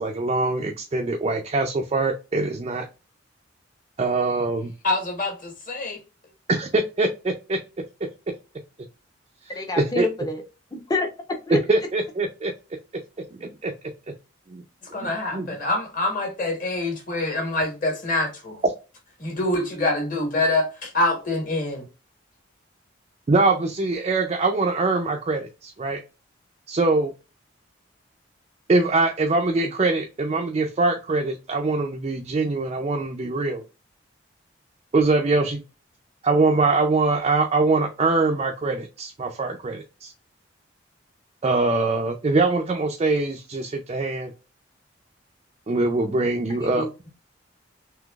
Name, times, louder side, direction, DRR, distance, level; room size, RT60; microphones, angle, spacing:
voice 1, 0.0-2.9 4.0-4.7 6.5-7.6 9.8-10.1 11.5-12.5 13.4-13.7 14.5-14.6 15.3-15.5 23.3-26.0 26.7-27.1 28.7-33.6 34.9-35.6 36.2-40.1 41.4-44.3 45.7-46.9, right 3 dB, 30° right, 0.4 m, -23 dB
voice 2, 4.8-6.0 14.9-18.6 19.2-21.9, left 2 dB, 40° left, 1.4 m, -25 dB
voice 3, 9.5-10.4 10.7-11.6 46.8-47.1, left 2 dB, 20° left, 0.6 m, -28 dB
3.7 x 2.7 x 2.3 m
head